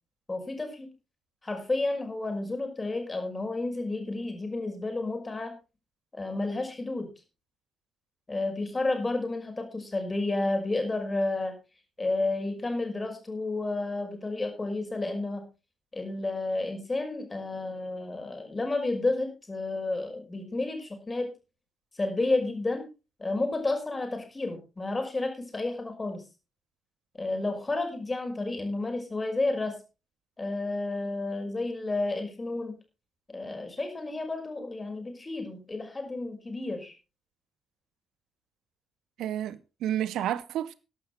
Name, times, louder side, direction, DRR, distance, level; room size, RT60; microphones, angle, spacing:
voice 1, 0.3-0.9 1.4-5.5 6.1-7.1 8.3-11.5 12.0-15.4 15.9-21.3 21.9-22.8 23.2-26.2 27.2-29.8 30.4-32.8 33.3-36.9, left 2 dB, 25° left, 5.7 m, -31 dB
voice 2, 39.2-40.7, right 11 dB, 60° right, 0.8 m, -30 dB
14.5 x 11.5 x 4.0 m
figure-of-eight pair, 45°, 0 cm